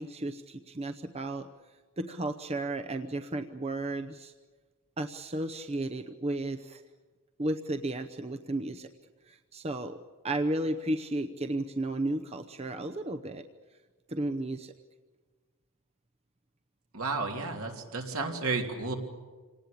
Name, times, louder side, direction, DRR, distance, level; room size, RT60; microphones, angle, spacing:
voice 1, 0.0-1.5 2.0-4.3 5.0-6.8 7.4-8.9 9.3-10.0 10.2-13.4 14.1-14.7, right 1 dB, 30° right, 7 dB, 0.8 m, -33 dB
voice 2, 16.9-19.0, right 3 dB, 70° right, 2 dB, 3.3 m, -32 dB
27.0 x 18.5 x 8.6 m, 1.4 s
head